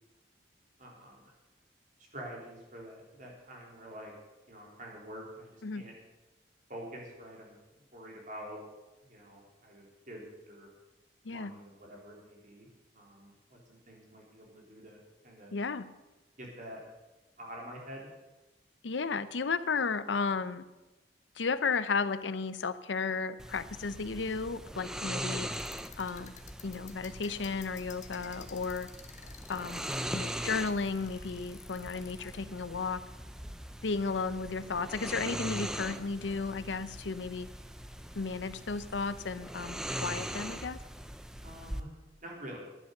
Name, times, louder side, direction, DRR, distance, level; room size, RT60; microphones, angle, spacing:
voice 1, 0.8-1.3 2.1-4.1 4.5-5.9 6.7-7.6 7.9-8.6 9.1-10.7 11.3-12.7 12.9-15.5 16.4-16.8 17.4-18.1 41.4-41.9 42.2-42.7, equal, 45° right, -1 dB, 3.6 m, -47 dB
voice 2, 15.5-15.9 18.8-20.7 21.4-25.5 26.0-26.3 26.6-28.9 29.5-33.0 33.8-37.5 38.2-40.8, left 4 dB, 80° left, 13 dB, 0.7 m, -34 dB
sound 1, 23.4-41.8, equal, 5° right, 0.5 m, -41 dB
sound 2, 25.5-32.4, left 9 dB, 40° left, 1.0 m, -53 dB
11.0 x 11.0 x 6.6 m, 1.1 s
head